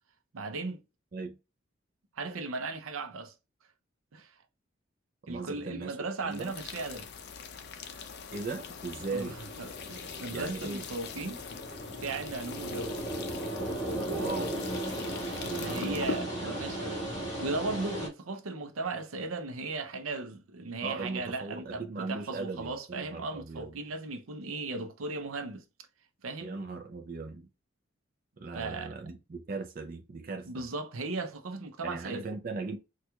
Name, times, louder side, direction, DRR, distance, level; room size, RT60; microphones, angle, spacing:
voice 1, 0.3-0.8 2.2-3.3 4.1-4.3 5.3-7.1 9.1-11.4 12.0-13.0 15.6-17.0 17.4-25.6 26.2-26.5 28.5-28.9 30.4-32.3, right 3 dB, 90° right, 0.6 m, -37 dB
voice 2, 5.2-6.0 6.2-6.5 8.3-9.4 10.3-10.8 14.1-14.6 15.4-16.9 20.8-23.8 26.4-27.5 28.4-30.6 31.8-32.8, right 3 dB, 45° right, 0.4 m, -38 dB
sound 1, 6.3-16.2, left 5 dB, 50° left, 0.5 m, -42 dB
sound 2, 8.9-18.1, right 1 dB, 20° left, 1.3 m, -37 dB
4.3 x 2.3 x 2.3 m
head